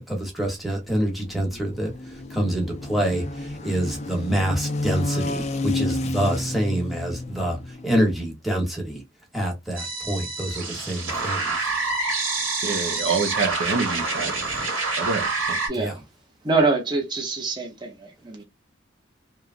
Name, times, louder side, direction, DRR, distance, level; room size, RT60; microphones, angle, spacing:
voice 1, 0.1-9.0 9.3-11.7 15.8-15.9, right 1 dB, ahead, 0.9 m, -26 dB
sound 1, 0.6-8.2, left 2 dB, 35° left, 0.4 m, -31 dB
sound 2, 9.8-15.7, right 3 dB, 90° right, 1.5 m, -27 dB
voice 2, 12.6-14.3 15.0-15.6, right 4 dB, 70° right, 0.6 m, -26 dB
voice 3, 15.7-16.0 16.4-18.4, right 3 dB, 25° right, 0.7 m, -25 dB
2.9 x 2.3 x 2.4 m
head